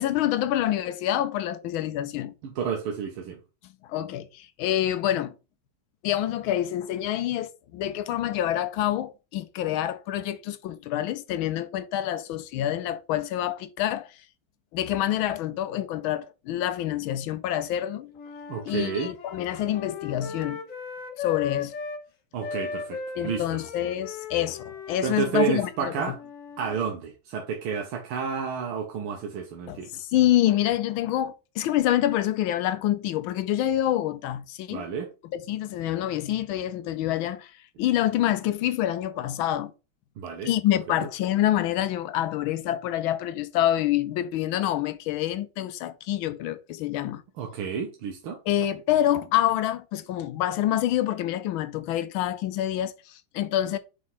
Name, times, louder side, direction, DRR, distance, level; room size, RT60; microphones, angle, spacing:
voice 1, 0.0-2.3 3.9-5.3 6.0-14.1 14.7-18.1 18.6-20.6 21.2-21.7 23.1-26.1 29.7-34.8 35.3-37.5 37.8-39.7 40.4-47.2 48.5-53.8, left 12 dB, 80° left, 1.4 m, -27 dB
voice 2, 2.4-3.4 18.5-19.1 22.3-23.0 23.2-23.4 25.0-26.2 26.6-29.9 34.7-35.1 40.2-40.5 47.4-48.4, right 6 dB, 90° right, 1.8 m, -30 dB
Wind instrument woodwind instrument, 18.1-22.0 22.4-26.8, left 6 dB, 50° left, 1.1 m, -37 dB
5.2 x 3.6 x 5.5 m
omnidirectional pair, 2.3 m